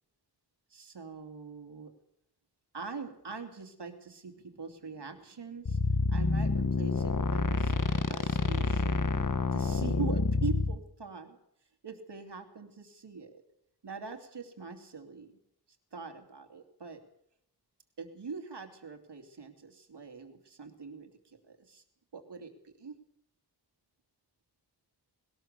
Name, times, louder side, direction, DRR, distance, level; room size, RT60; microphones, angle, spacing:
voice 1, 0.7-1.9 2.7-5.8 6.1-7.7 8.1-8.9 9.5-11.4 11.8-13.4 13.8-15.3 15.9-17.0 18.0-21.8 22.1-23.0, right 5 dB, 85° right, 5 dB, 2.9 m, -43 dB
sound 1, 5.7-10.8, left 4 dB, 50° left, 1.4 m, -28 dB
20.5 x 18.5 x 6.8 m, 0.75 s
wide cardioid pair, 100°, 40 cm